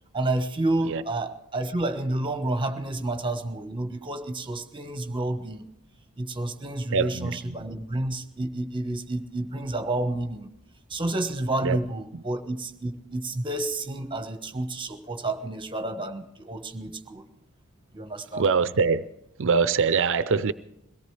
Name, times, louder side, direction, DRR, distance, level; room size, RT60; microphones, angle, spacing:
voice 1, 0.1-5.7 6.2-10.5 10.9-17.2 17.9-18.5, right 2 dB, 25° right, 1.3 m, -30 dB
voice 2, 6.9-7.5 11.6-11.8 18.3-19.0 19.4-20.5, right 5 dB, 60° right, 0.6 m, -23 dB
23.0 x 17.5 x 3.3 m
head